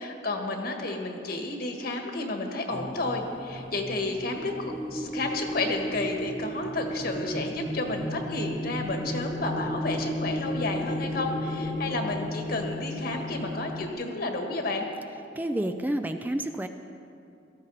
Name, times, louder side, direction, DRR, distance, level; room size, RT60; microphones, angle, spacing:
voice 1, 0.0-14.9, left 2 dB, 55° left, 3 dB, 1.6 m, -31 dB
sound 1, 2.7-13.9, equal, 15° left, 0.8 m, -34 dB
voice 2, 15.4-16.7, right 1 dB, 10° right, 7 dB, 0.4 m, -29 dB
18.0 x 14.0 x 4.1 m, 2.6 s
head